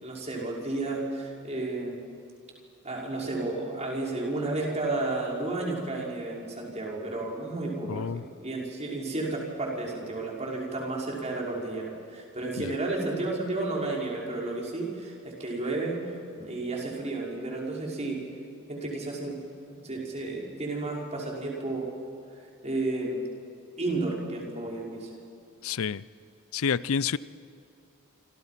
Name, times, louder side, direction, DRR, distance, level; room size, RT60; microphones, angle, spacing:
voice 1, 0.0-2.0 2.8-15.1 15.4-18.2 18.7-19.4 19.8-21.9 22.6-23.2 23.8-25.1, right 2 dB, 30° right, -2 dB, 5.2 m, -32 dB
voice 2, 7.8-8.2 12.6-12.7 25.6-26.0 26.5-27.2, left 6 dB, 70° left, 18 dB, 0.5 m, -29 dB
28.0 x 26.0 x 5.8 m, 2.5 s
head